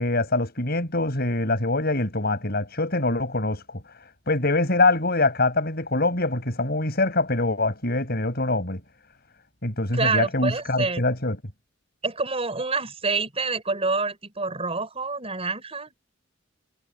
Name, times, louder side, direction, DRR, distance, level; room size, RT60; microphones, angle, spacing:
voice 1, 0.0-3.6 4.3-8.8 9.6-11.4, left 2 dB, 55° left, 7.4 m, -24 dB
voice 2, 9.9-11.0 12.0-15.9, right 3 dB, 30° right, 4.8 m, -27 dB
head